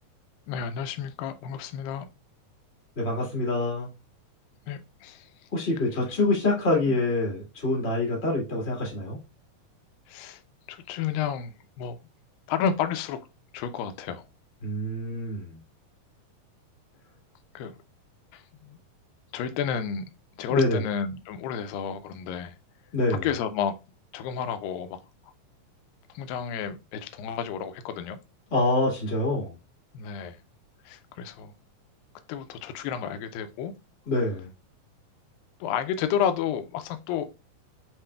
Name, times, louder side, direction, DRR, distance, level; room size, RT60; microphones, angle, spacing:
voice 1, 0.5-2.1 4.7-5.5 6.9-7.0 10.1-10.4 10.7-12.0 12.5-13.2 13.5-14.3 17.5-17.8 18.3-18.8 19.3-20.1 20.4-22.6 23.1-23.8 24.1-25.0 26.1-28.2 29.9-30.4 30.9-31.5 32.3-33.7 35.6-37.3, left 8 dB, 85° left, 2.3 m, -31 dB
voice 2, 2.9-3.9 5.5-9.2 14.6-15.6 20.5-20.8 22.9-23.2 28.5-29.5 34.1-34.5, left 2 dB, 45° left, 0.8 m, -26 dB
7.1 x 2.9 x 2.2 m
omnidirectional pair, 4.0 m